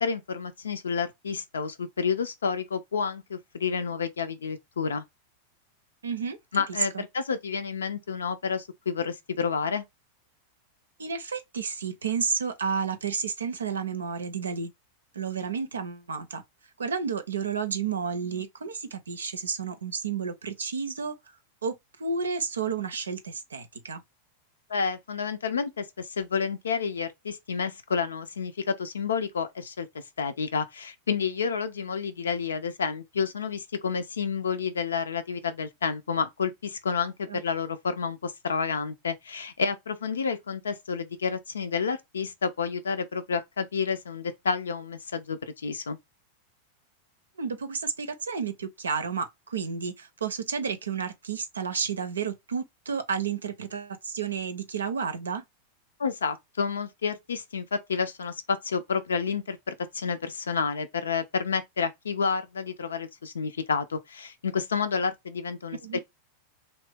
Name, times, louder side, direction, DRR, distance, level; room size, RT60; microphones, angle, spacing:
voice 1, 0.0-5.0 6.5-9.8 24.7-46.0 56.0-66.0, left 5 dB, 70° left, 0.5 m, -30 dB
voice 2, 6.0-6.4 6.9-7.0 11.0-14.7 15.1-16.4 16.8-21.3 21.6-24.0 37.3-37.4 47.4-55.4 65.8-66.0, right 6 dB, 70° right, 0.6 m, -31 dB
3.0 x 2.7 x 3.4 m
figure-of-eight pair, 90°, 0 cm